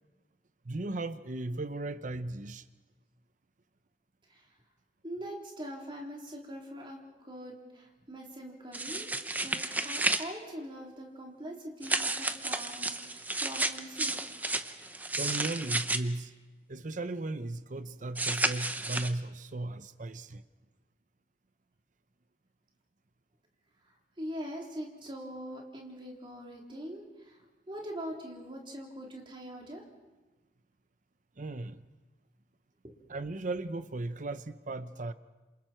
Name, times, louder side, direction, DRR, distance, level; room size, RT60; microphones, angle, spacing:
voice 1, 0.6-2.6 15.1-16.3 16.7-20.4 31.4-31.9 33.1-35.1, right 2 dB, 45° right, 0.7 m, -36 dB
voice 2, 5.0-9.1 9.4-14.2 23.8-29.8 32.8-33.0, equal, 30° right, 3.7 m, -43 dB
sound 1, 8.7-10.2 11.8-16.0 18.2-19.1, right 2 dB, 10° right, 0.8 m, -32 dB
28.0 x 27.5 x 4.5 m
head